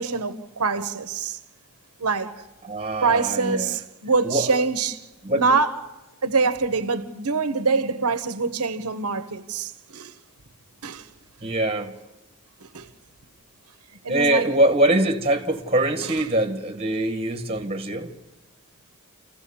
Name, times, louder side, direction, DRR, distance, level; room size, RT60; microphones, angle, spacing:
voice 1, 0.0-1.4 2.0-2.4 3.0-5.0 5.3-5.8 6.2-10.2 10.8-11.1 12.6-12.9 14.0-14.5, right 4 dB, 85° right, 1.0 m, -24 dB
voice 2, 2.6-3.8 4.2-4.5 5.2-5.5 11.4-11.9 14.1-18.1, right 1 dB, 25° right, 1.6 m, -23 dB
29.0 x 15.0 x 7.1 m
head